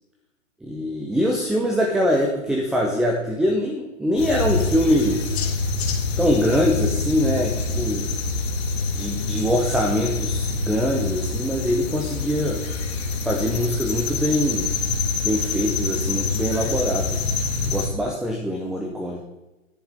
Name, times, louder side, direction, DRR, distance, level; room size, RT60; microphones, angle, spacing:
voice 1, 0.6-5.4 6.2-8.1 8.9-12.6 13.2-14.7 15.2-17.3 17.7-19.2, equal, ahead, 1 dB, 0.6 m, -23 dB
sound 1, 4.2-17.9, left 4 dB, 50° left, 2.0 m, -26 dB
10.5 x 10.0 x 3.4 m, 1.0 s
figure-of-eight pair, 115°, 40 cm